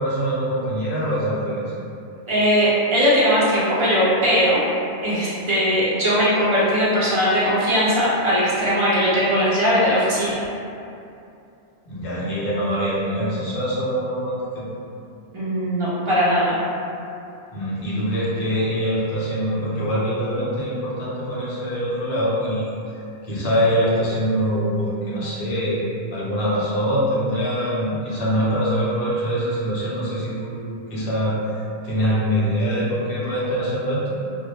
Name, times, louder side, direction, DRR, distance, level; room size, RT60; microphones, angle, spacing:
voice 1, 0.0-1.6 11.9-14.6 17.5-22.8 23.2-31.4 31.8-34.0, equal, 60° left, -8 dB, 0.7 m, -24 dB
voice 2, 2.3-4.6 5.0-10.4 15.3-16.6, equal, 45° right, -9 dB, 0.4 m, -19 dB
2.1 x 2.1 x 2.8 m, 2.6 s
omnidirectional pair, 1.2 m